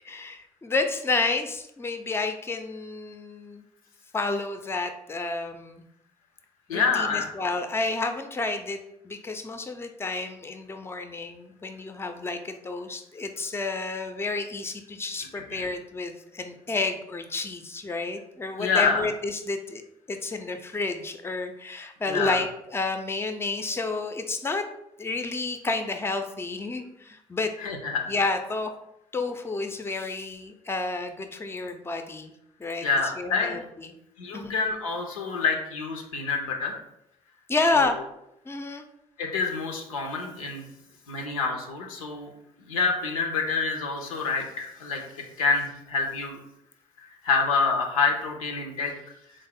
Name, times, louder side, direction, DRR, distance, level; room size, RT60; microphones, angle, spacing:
voice 1, 0.1-3.6 4.1-5.8 6.7-8.8 9.0-19.8 20.1-24.6 25.0-27.5 28.1-28.7 29.1-32.3 32.6-32.9 33.2-34.0 34.3-34.6 37.5-38.0 38.5-38.9, left 3 dB, 15° left, 6 dB, 0.4 m, -30 dB
voice 2, 6.7-7.3 15.3-15.7 18.6-19.0 22.1-22.4 27.6-28.1 32.8-33.6 34.2-36.7 37.7-37.8 39.2-40.6 41.1-42.3 42.6-45.0 45.4-46.4 47.2-48.9, left 4 dB, 90° left, 2 dB, 0.4 m, -27 dB
3.6 x 2.0 x 3.4 m, 0.80 s
hypercardioid pair, 45°, 17 cm